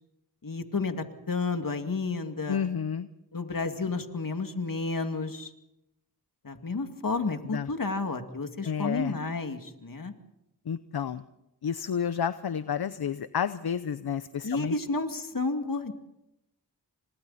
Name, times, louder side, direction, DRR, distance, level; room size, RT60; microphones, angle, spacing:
voice 1, 0.4-2.7 3.3-5.5 6.4-10.1 14.4-15.9, left 3 dB, 60° left, 6 dB, 2.4 m, -31 dB
voice 2, 2.5-3.1 7.5-7.7 8.6-9.1 10.7-11.2 11.6-14.7, left 7 dB, 75° left, 13 dB, 0.8 m, -30 dB
29.0 x 26.0 x 4.3 m, 0.88 s
wide cardioid pair, 60°, 38 cm